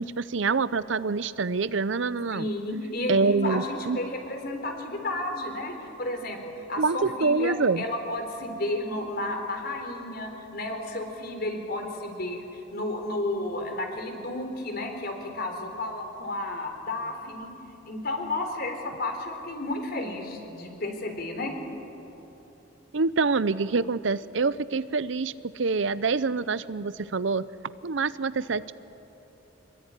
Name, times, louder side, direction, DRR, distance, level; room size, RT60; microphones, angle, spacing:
voice 1, 0.0-2.5 3.1-4.0 6.8-7.8 22.9-27.4 27.8-28.7, right 4 dB, 70° right, 16 dB, 0.7 m, -26 dB
voice 2, 2.3-6.4 6.7-17.5 17.9-21.5, left 2 dB, 50° left, 4 dB, 4.0 m, -32 dB
26.0 x 22.0 x 9.9 m, 3.0 s
head